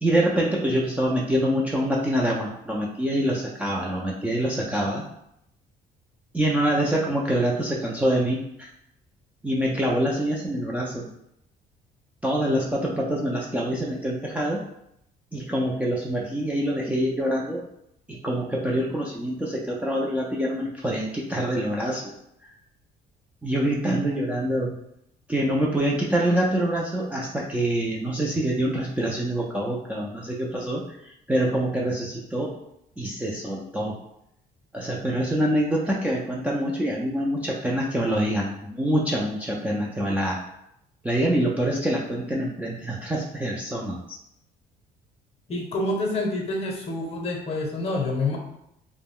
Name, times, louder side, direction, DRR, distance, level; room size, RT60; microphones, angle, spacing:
voice 1, 0.0-5.0 6.3-8.7 9.4-11.1 12.2-14.6 15.3-17.6 18.1-22.1 23.4-24.7 25.3-32.5 33.0-34.0 34.7-40.4 41.0-44.2, right 1 dB, 10° right, -4 dB, 0.3 m, -25 dB
voice 2, 45.5-48.4, left 2 dB, 35° left, 1 dB, 0.7 m, -27 dB
2.2 x 2.0 x 3.5 m, 0.78 s
cardioid pair, 110°, 17 cm